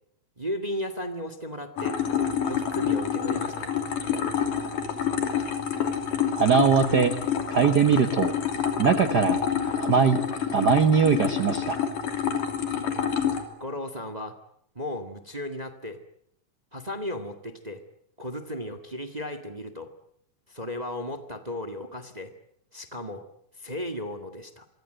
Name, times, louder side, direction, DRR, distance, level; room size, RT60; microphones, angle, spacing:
voice 1, 0.4-2.0 2.4-3.7 13.6-14.4 14.7-16.0 16.7-17.8 18.2-19.9 20.5-22.3 22.7-23.2 23.6-24.7, left 1 dB, 20° right, 10 dB, 1.1 m, -35 dB
sound 1, 1.8-13.4, left 8 dB, 75° left, 4.5 m, -28 dB
voice 2, 6.3-7.1 7.5-8.3 8.8-9.4 9.8-10.2 10.5-11.8, right 6 dB, 70° right, 9 dB, 0.9 m, -21 dB
27.0 x 24.0 x 7.9 m, 0.71 s
omnidirectional pair, 3.8 m